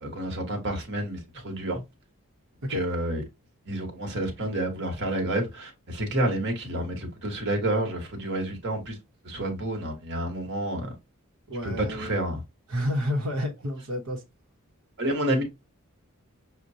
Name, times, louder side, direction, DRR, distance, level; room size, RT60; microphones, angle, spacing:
voice 1, 0.0-1.8 2.7-3.2 3.6-9.0 9.2-10.9 11.6-12.4 15.0-15.4, right 1 dB, 55° right, 1.2 m, -29 dB
voice 2, 11.5-12.1 12.7-14.2, left 1 dB, 85° right, 1.0 m, -30 dB
6.5 x 2.2 x 2.7 m
head